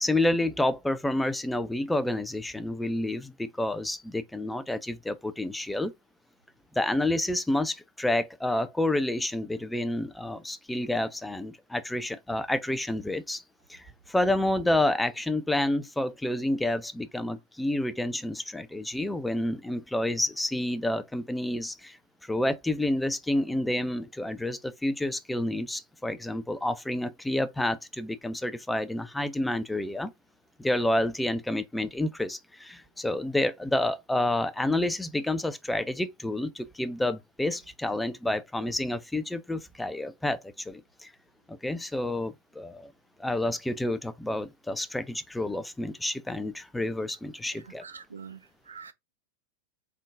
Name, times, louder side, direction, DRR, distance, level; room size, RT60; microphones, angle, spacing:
voice 1, 0.0-5.9 6.7-13.4 13.7-30.1 30.6-41.1 41.5-42.9 43.2-47.8, left 1 dB, 5° left, 0.5 m, -29 dB
voice 2, 47.5-48.9, right 6 dB, 75° right, 0.5 m, -45 dB
3.7 x 3.6 x 2.4 m
figure-of-eight pair, 90°, 0 cm